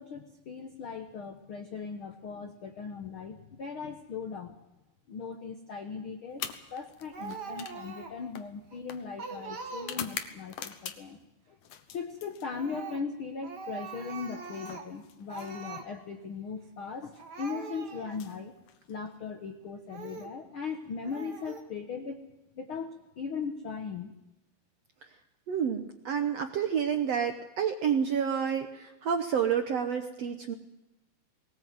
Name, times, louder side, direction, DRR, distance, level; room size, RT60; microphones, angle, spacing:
voice 1, 0.0-4.5 5.1-6.4 6.7-11.2 11.5-11.6 11.9-18.5 18.9-22.2 22.5-24.1, left 5 dB, 85° left, 6 dB, 1.1 m, -38 dB
sound 1, 6.3-11.3 11.6-12.9 14.1-15.9 17.0-17.2 18.0-19.2, left 9 dB, 65° left, 2.5 m, -44 dB
Speech, 7.1-8.3 8.7-8.8 9.2-10.3 12.4-13.1 13.4-15.0 15.3-15.9 16.8-16.9 17.2-18.2 18.8-18.9 19.9-20.4 21.0-21.6, right 5 dB, 40° right, 1.5 m, -42 dB
voice 2, 25.5-30.5, right 7 dB, 70° right, 6 dB, 1.5 m, -29 dB
21.0 x 19.0 x 7.8 m, 0.96 s
omnidirectional pair, 4.3 m